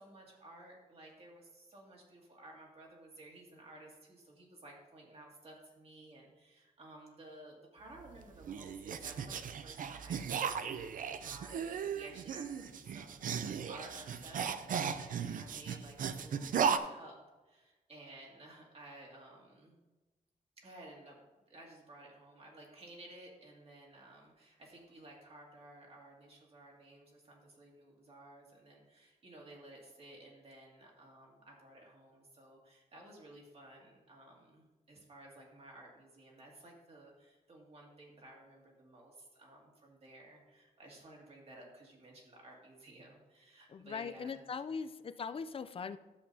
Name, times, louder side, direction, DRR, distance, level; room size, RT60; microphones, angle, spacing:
voice 1, 0.0-9.4 9.6-17.2 17.4-19.8 20.6-21.2 21.5-44.8, right 1 dB, 45° right, -2 dB, 2.3 m, -55 dB
sound 1, 8.0-16.8, right 7 dB, 75° right, 0.5 m, -36 dB
voice 2, 43.7-46.0, left 5 dB, 40° left, 11 dB, 0.4 m, -40 dB
13.0 x 7.4 x 2.8 m, 1.1 s
wide cardioid pair, 135°, 14 cm